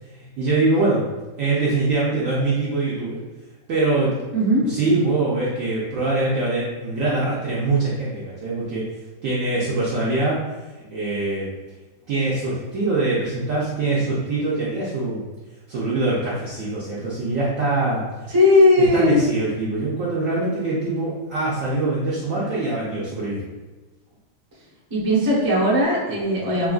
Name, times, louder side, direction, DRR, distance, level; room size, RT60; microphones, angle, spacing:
voice 1, 0.1-1.0 1.4-3.2 3.7-4.2 4.6-8.8 9.2-10.4 10.9-11.5 12.1-15.2 15.7-18.0 18.8-23.4, right 2 dB, 70° right, -6 dB, 0.8 m, -23 dB
voice 2, 4.3-4.6 18.3-19.2 24.9-26.7, left 1 dB, 20° right, -8 dB, 0.6 m, -17 dB
3.6 x 2.4 x 2.3 m, 1.2 s
omnidirectional pair, 1.8 m